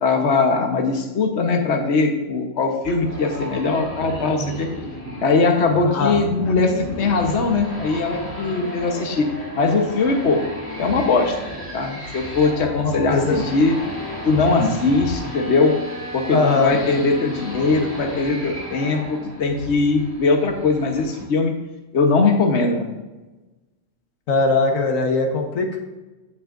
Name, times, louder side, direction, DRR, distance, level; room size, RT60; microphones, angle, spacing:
voice 1, 0.0-4.7 5.2-9.2 9.5-10.4 10.8-11.4 11.7-13.7 14.2-15.7 16.1-21.5 21.9-22.9, left 3 dB, 60° left, 3 dB, 1.4 m, -20 dB
sound 1, 2.8-21.2, equal, 10° left, 2.1 m, -34 dB
voice 2, 5.8-6.2 12.8-13.4 14.6-14.7 16.3-16.8 24.3-25.8, left 3 dB, 90° left, 2 dB, 1.6 m, -20 dB
16.0 x 6.3 x 2.6 m, 1.1 s
omnidirectional pair, 1.3 m